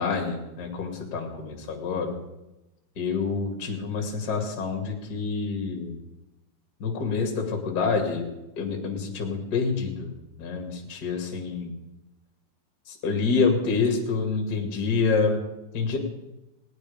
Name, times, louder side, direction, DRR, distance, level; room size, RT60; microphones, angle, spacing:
voice 1, 0.0-2.1 3.0-6.0 6.8-8.3 8.6-10.1 10.4-11.7 12.9-15.4 15.7-16.0, left 4 dB, 35° left, 2 dB, 1.8 m, -27 dB
18.0 x 9.4 x 5.2 m, 0.98 s
omnidirectional pair, 4.9 m